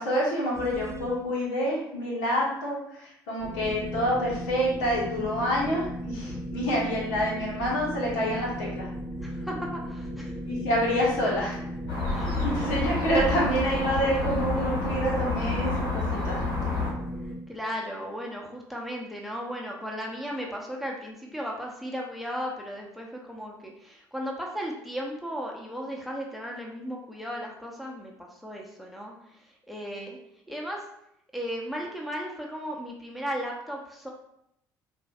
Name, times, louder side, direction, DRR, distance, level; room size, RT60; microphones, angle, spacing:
voice 1, 0.0-8.9 10.5-11.6 12.4-16.4, equal, 70° left, -4 dB, 1.2 m, -27 dB
sound 1, 0.5-1.2 3.4-17.4, equal, 30° right, 0.8 m, -36 dB
voice 2, 9.2-10.4 12.0-12.4 17.2-30.2 30.5-30.9 31.3-34.1, equal, ahead, -1 dB, 0.8 m, -36 dB
sound 2, 11.9-16.9, left 3 dB, 55° left, 1.4 m, -29 dB
4.8 x 2.6 x 2.3 m, 0.77 s
hypercardioid pair, 55°, 10 cm